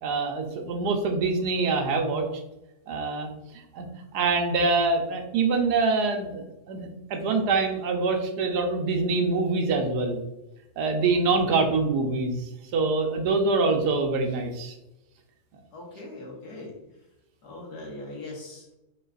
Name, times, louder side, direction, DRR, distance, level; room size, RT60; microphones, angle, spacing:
voice 1, 0.0-2.2 2.9-3.3 3.7-3.9 4.1-10.2 10.8-12.4 12.7-14.7, right 3 dB, 85° right, 4 dB, 1.3 m, -25 dB
voice 2, 15.7-16.7 17.4-18.8, left 2 dB, 80° left, -3 dB, 2.0 m, -40 dB
5.3 x 3.9 x 2.5 m, 0.92 s
omnidirectional pair, 1.7 m